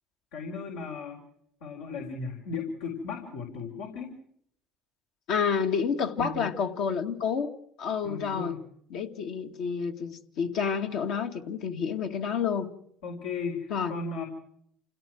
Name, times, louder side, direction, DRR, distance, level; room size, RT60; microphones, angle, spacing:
voice 1, 0.3-1.2 1.6-4.1 6.2-6.5 8.0-8.6 13.0-14.2, left 4 dB, 85° left, 4.5 m, -36 dB
voice 2, 5.3-7.5 7.8-8.5 8.9-12.7 13.7-13.9, left 6 dB, 70° left, 2.2 m, -29 dB
28.5 x 17.0 x 6.3 m
supercardioid pair, 85°, 0 cm